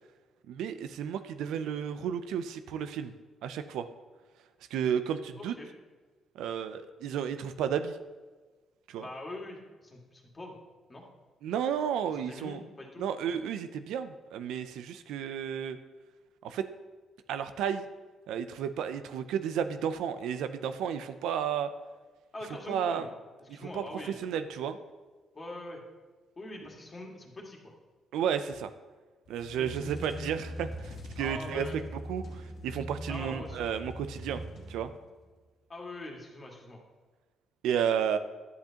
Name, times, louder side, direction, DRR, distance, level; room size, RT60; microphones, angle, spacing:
voice 1, 0.5-3.1 3.4-3.9 4.7-5.5 6.4-8.0 8.9-9.1 11.4-12.6 13.0-15.8 16.4-16.6 17.3-17.9 18.3-21.7 22.7-23.1 23.5-24.8 28.1-28.7 29.3-31.8 32.1-34.4 34.7-34.9 37.6-38.2, right 8 dB, 85° right, 10 dB, 0.4 m, -32 dB
voice 2, 5.4-5.7 9.0-10.6 10.9-11.0 12.1-13.0 22.3-23.1 23.4-24.3 25.3-25.8 26.4-27.6 29.6-30.0 31.2-31.8 33.1-33.6 35.7-36.8, left 2 dB, 30° left, -1 dB, 2.0 m, -43 dB
sound 1, 29.3-35.2, equal, 65° left, 1.8 m, -41 dB
10.5 x 8.0 x 2.9 m, 1.3 s
cardioid pair, 90°, 0 cm